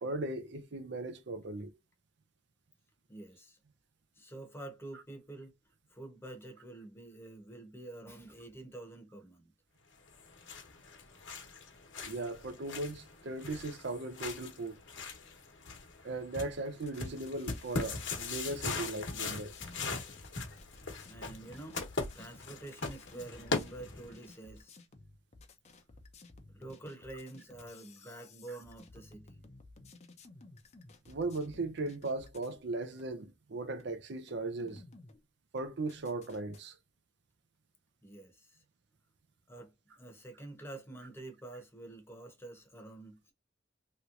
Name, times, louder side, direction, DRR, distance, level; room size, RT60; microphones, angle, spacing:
voice 1, 0.0-1.7 12.0-14.8 16.0-19.5 31.1-34.8 35.5-36.8, right 2 dB, 60° right, 0.5 m, -38 dB
voice 2, 3.1-3.6 4.1-5.5 5.9-9.5 20.7-20.8 21.1-21.8 22.1-24.8 26.5-29.4 38.0-38.6 39.5-43.3, right 2 dB, 15° left, 0.9 m, -48 dB
sound 1, 10.1-24.3, left 3 dB, 75° left, 1.1 m, -40 dB
sound 2, 16.8-32.6 33.0-33.1 33.8-33.9 34.3-35.2 35.6-36.6, left 3 dB, 35° left, 0.6 m, -56 dB
3.1 x 3.0 x 2.5 m
head